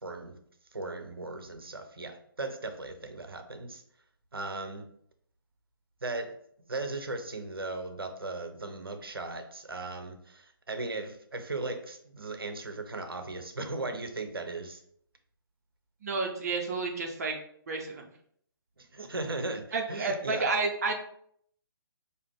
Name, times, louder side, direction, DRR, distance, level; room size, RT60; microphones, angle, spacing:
voice 1, 0.0-0.4 0.7-3.8 4.3-4.9 6.0-6.3 6.7-14.8 18.8-20.5, right 2 dB, 75° right, 7 dB, 0.7 m, -37 dB
voice 2, 16.0-17.3 17.7-18.1 19.7-20.9, right 3 dB, 45° right, 2 dB, 0.8 m, -30 dB
4.8 x 2.6 x 3.3 m, 0.65 s
figure-of-eight pair, 135°, 12 cm